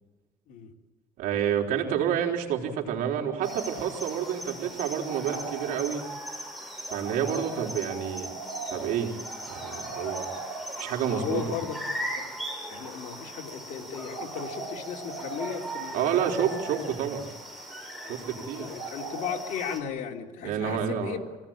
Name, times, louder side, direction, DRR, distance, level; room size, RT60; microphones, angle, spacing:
voice 1, 1.2-6.0 6.9-8.3 8.7-9.1 9.5-10.3 10.8-11.4 15.9-17.2 18.1-18.7 20.4-21.2, right 9 dB, 75° right, 1 dB, 3.9 m, -29 dB
sound 1, 3.4-19.8, right 2 dB, ahead, 7.6 m, -38 dB
voice 2, 11.1-12.4 12.7-16.6 18.0-21.2, left 8 dB, 65° left, 0 dB, 3.4 m, -36 dB
26.0 x 18.0 x 8.9 m, 1.3 s
cardioid pair, 120°, 15 cm